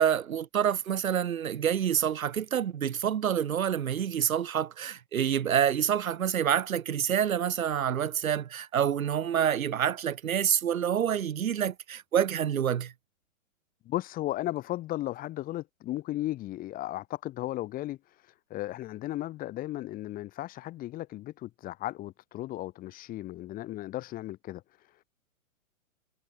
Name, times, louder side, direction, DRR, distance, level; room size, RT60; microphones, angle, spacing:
voice 1, 0.0-12.9, right 9 dB, 85° right, 2.1 m, -27 dB
voice 2, 13.8-18.0 18.5-24.6, left 15 dB, 20° left, 5.6 m, -35 dB
hypercardioid pair, 160°, 41 cm